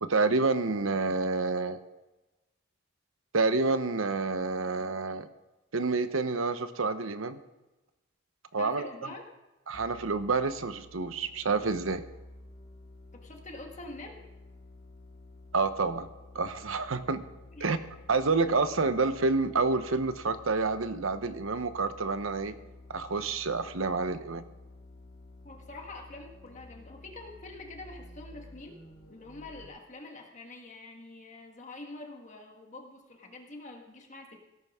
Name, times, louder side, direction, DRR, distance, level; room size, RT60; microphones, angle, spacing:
voice 1, 0.0-1.8 3.3-5.3 5.7-7.4 8.5-8.9 9.7-12.0 15.5-16.1 16.3-17.2 17.6-17.8 18.1-22.6 22.9-24.4, right 3 dB, 90° right, 11 dB, 0.9 m, -28 dB
voice 2, 8.6-9.2 13.1-14.3 17.5-17.8 25.4-28.8 29.1-34.4, left 2 dB, 35° left, 3 dB, 1.6 m, -46 dB
sound 1, 9.7-29.7, left 2 dB, 55° left, 2.3 m, -51 dB
17.0 x 13.5 x 3.7 m, 1.1 s
head